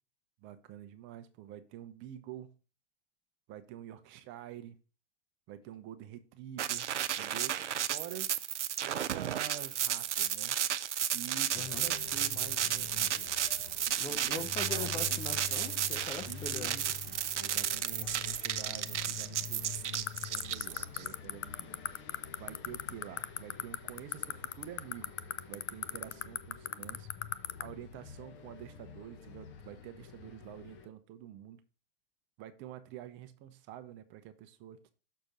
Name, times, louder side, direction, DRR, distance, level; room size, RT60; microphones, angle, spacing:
voice 1, 0.4-2.5 3.5-4.8 5.5-6.9 7.1-8.4 8.8-10.6 11.1-13.1 14.1-15.2 16.3-21.8 22.4-25.1 25.5-27.1 27.6-31.6 32.4-34.9, right 11 dB, 35° right, 10 dB, 0.8 m, -48 dB
sound 1, 6.6-21.0, right 10 dB, 90° right, 0.6 m, -33 dB
sound 2, 11.5-30.9, left 8 dB, 35° left, 1.1 m, -48 dB
voice 2, 11.5-11.9 14.0-16.8 17.6-17.8, left 4 dB, 15° left, 7 dB, 0.6 m, -41 dB
sound 3, 19.9-27.6, left 12 dB, 80° left, 0.6 m, -33 dB
6.6 x 4.5 x 5.2 m, 0.36 s
hypercardioid pair, 115°, 35 cm